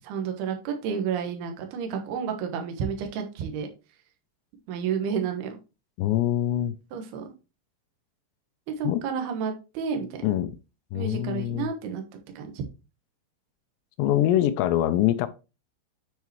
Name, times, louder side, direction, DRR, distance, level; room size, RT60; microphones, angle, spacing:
voice 1, 0.0-3.7 4.7-5.5 6.9-7.2 8.8-10.1 10.9-12.0 12.4-12.6, right 6 dB, 70° right, 2.9 m, -30 dB
voice 2, 6.0-6.8 8.8-9.0 10.2-10.5 10.9-11.7 14.0-15.3, left 12 dB, 85° left, 2.7 m, -24 dB
9.7 x 4.6 x 3.0 m
omnidirectional pair, 5.1 m